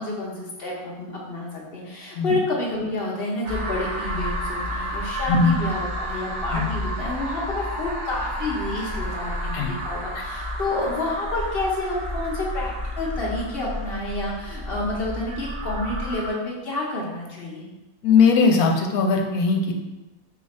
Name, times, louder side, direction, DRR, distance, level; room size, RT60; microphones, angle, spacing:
voice 1, 0.0-17.7, left 2 dB, 55° left, -3 dB, 0.8 m, -29 dB
sound 1, 3.4-16.3, equal, 85° right, 1.5 m, -31 dB
voice 2, 18.0-19.7, left 5 dB, 80° left, 3 dB, 1.1 m, -19 dB
4.1 x 2.4 x 4.2 m, 1.1 s
omnidirectional pair, 1.5 m